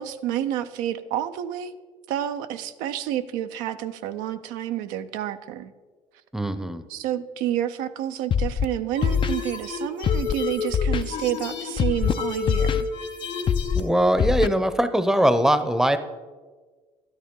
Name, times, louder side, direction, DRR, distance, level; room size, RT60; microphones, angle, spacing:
voice 1, 0.0-1.8 2.1-5.7 6.9-12.9, right 11 dB, 80° right, 9 dB, 0.5 m, -29 dB
voice 2, 6.3-6.8 13.7-16.0, right 1 dB, 5° right, 11 dB, 0.7 m, -21 dB
Scratching (performance technique), 8.3-8.7 9.0-9.3 10.0-10.3 10.7-11.0 11.8-12.1 12.5-12.8 13.5-13.8 14.2-14.5, left 7 dB, 35° left, 0.5 m, -22 dB
sound 1, 8.9-13.9, left 5 dB, 75° left, 2.2 m, -31 dB
12.0 x 9.5 x 3.7 m, 1.4 s
supercardioid pair, 80°, 14 cm